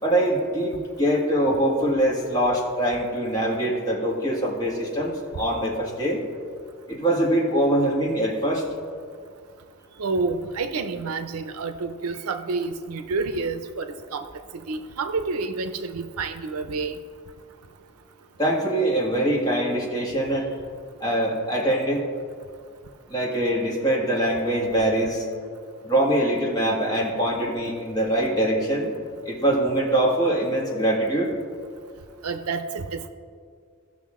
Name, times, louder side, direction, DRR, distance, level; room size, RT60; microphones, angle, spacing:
voice 1, 0.0-6.2 6.9-8.6 18.4-20.5 21.0-22.0 23.1-25.2 25.8-29.0 29.2-31.3, right 1 dB, 15° left, -4 dB, 1.7 m, -23 dB
voice 2, 10.0-14.3 14.5-17.0 32.2-33.1, right 4 dB, 80° right, 9 dB, 0.6 m, -29 dB
16.5 x 6.0 x 3.6 m, 2.1 s
head